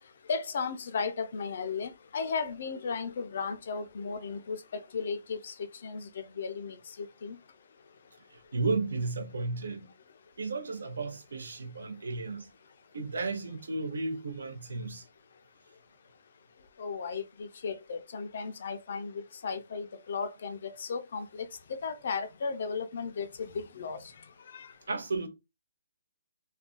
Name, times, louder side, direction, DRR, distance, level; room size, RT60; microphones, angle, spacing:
voice 1, 0.3-4.6 4.9-5.5 5.8-7.4 16.8-24.0 24.5-24.7, left 5 dB, 45° left, 0.4 m, -35 dB
voice 2, 8.3-9.9 10.4-12.5 12.9-15.0 24.9-25.3, right 3 dB, 70° right, 0.7 m, -33 dB
2.4 x 2.2 x 3.7 m
hypercardioid pair, 175°, 0 cm